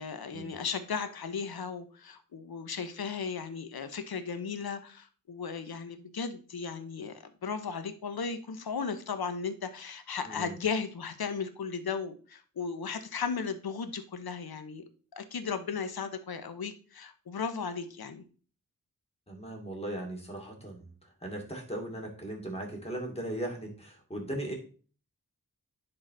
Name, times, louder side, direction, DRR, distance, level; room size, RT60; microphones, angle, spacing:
voice 1, 0.0-14.8 15.2-18.2, left 5 dB, 80° left, 10 dB, 0.9 m, -36 dB
voice 2, 10.2-10.6 19.3-20.9 21.2-24.5, right 1 dB, 15° left, 0 dB, 2.6 m, -38 dB
10.5 x 3.9 x 3.8 m, 0.40 s
wide cardioid pair, 60°, 36 cm